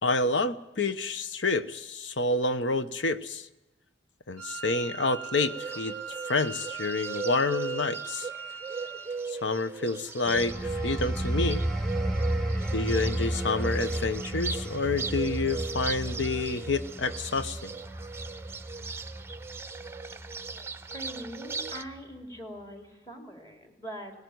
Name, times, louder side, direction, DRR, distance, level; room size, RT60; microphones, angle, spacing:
voice 1, 0.0-3.5 4.3-6.0 6.3-8.3 9.3-11.6 12.7-17.7, left 3 dB, 70° left, 12 dB, 0.9 m, -28 dB
Wind instrument woodwind instrument, 4.4-9.2, right 6 dB, 55° left, 5.5 m, -40 dB
Bird, 5.4-21.8, right 4 dB, 15° right, 0.7 m, -38 dB
sound 1, 10.2-20.6 21.0-21.3, right 1 dB, 5° left, 1.6 m, -32 dB
voice 2, 20.8-24.1, equal, 20° left, 3 dB, 3.3 m, -42 dB
19.0 x 17.5 x 9.4 m, 0.99 s
head